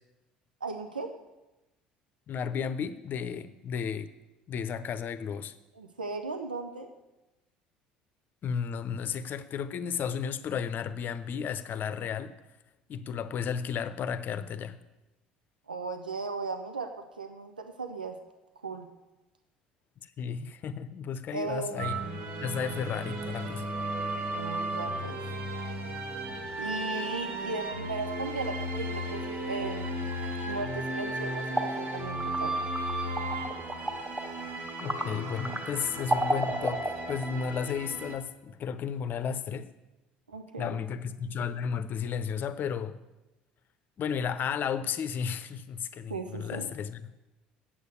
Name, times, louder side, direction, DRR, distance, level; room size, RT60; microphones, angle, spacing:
voice 1, 0.6-1.1 5.7-6.9 15.7-16.9 17.2-18.2 18.6-18.9 21.3-21.9 24.3-25.2 26.6-30.0 30.4-32.6 40.3-40.8 46.1-46.7, right 3 dB, 85° right, 6 dB, 0.6 m, -36 dB
voice 2, 2.3-4.1 4.5-5.5 8.4-12.3 12.9-14.7 20.2-22.1 22.4-23.7 34.8-39.7 40.6-43.0 44.0-47.1, left 7 dB, 45° left, 13 dB, 0.8 m, -33 dB
sound 1, 21.8-38.2, right 1 dB, 50° right, 1.7 m, -35 dB
sound 2, 30.9-37.5, right 1 dB, 10° right, 1.8 m, -34 dB
8.3 x 7.8 x 8.3 m, 1.0 s
figure-of-eight pair, 60°, 5 cm